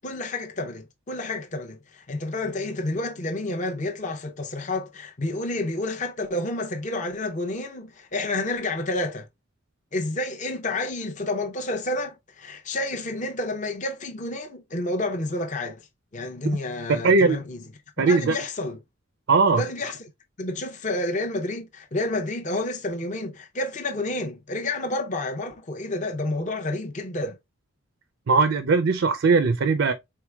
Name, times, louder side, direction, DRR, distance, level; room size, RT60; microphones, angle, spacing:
voice 1, 0.0-9.3 9.9-15.9 16.1-17.6 18.0-18.8 19.5-20.0 20.4-27.4, left 2 dB, 35° left, 0.6 m, -30 dB
voice 2, 16.9-17.4 18.0-18.4 19.3-19.6 28.3-29.9, right 4 dB, 65° right, 0.4 m, -19 dB
4.6 x 3.8 x 2.3 m
head